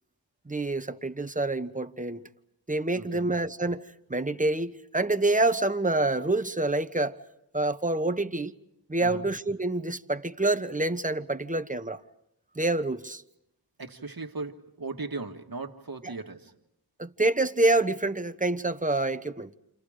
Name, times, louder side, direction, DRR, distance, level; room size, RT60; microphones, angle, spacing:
voice 1, 0.5-2.2 2.7-7.2 7.5-8.5 8.9-12.0 12.6-13.2 17.0-19.5, right 2 dB, 20° right, 1.0 m, -27 dB
voice 2, 2.9-3.4 9.0-9.3 13.8-16.5, right 3 dB, 55° right, 1.8 m, -38 dB
29.5 x 28.0 x 5.1 m
wide cardioid pair, 55°, 42 cm